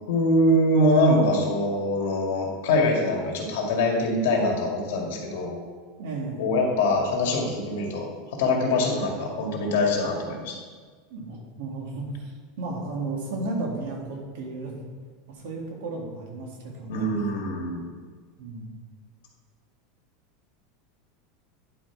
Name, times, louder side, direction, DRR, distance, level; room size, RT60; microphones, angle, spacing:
voice 1, 0.1-5.6 6.4-10.6 16.9-17.8, left 1 dB, 75° left, 0 dB, 1.9 m, -23 dB
voice 2, 6.0-6.5 11.1-12.3 12.6-14.8 15.3-17.1 18.4-18.7, right 2 dB, 70° right, 0 dB, 2.0 m, -33 dB
10.5 x 4.6 x 4.7 m, 1.5 s
supercardioid pair, 175°, 0 cm